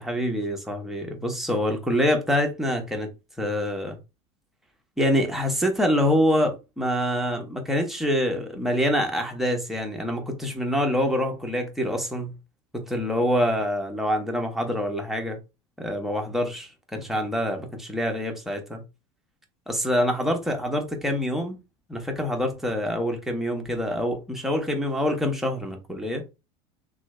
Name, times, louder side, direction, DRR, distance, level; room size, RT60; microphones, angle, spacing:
voice 1, 0.0-3.1 3.4-4.0 5.0-12.3 12.7-15.4 15.8-18.8 19.7-21.6 21.9-26.2, equal, ahead, 1.0 m, -26 dB
3.1 x 2.4 x 3.2 m
hypercardioid pair, 100°, 17 cm